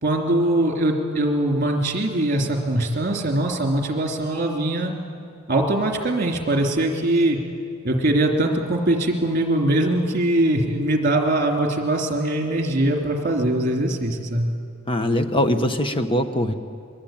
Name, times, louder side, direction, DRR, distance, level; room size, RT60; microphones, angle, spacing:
voice 1, 0.0-4.9 5.5-7.4 7.8-14.5, right 1 dB, 40° right, 2 dB, 3.0 m, -22 dB
voice 2, 14.9-16.5, left 1 dB, 25° left, 7 dB, 1.3 m, -22 dB
22.5 x 22.0 x 8.9 m, 2.3 s
head